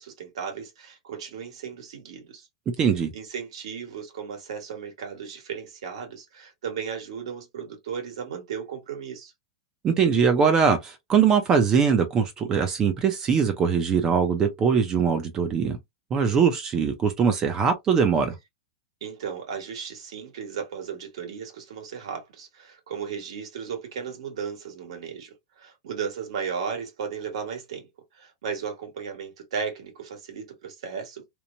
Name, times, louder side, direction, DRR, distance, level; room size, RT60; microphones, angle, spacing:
voice 1, 0.0-2.5 3.1-9.3 19.0-27.9 28.1-31.2, right 7 dB, 75° right, 1.3 m, -35 dB
voice 2, 2.8-3.1 9.8-15.8 16.1-18.4, right 6 dB, 20° right, 0.4 m, -22 dB
3.0 x 2.1 x 2.5 m
supercardioid pair, 170°, 3 cm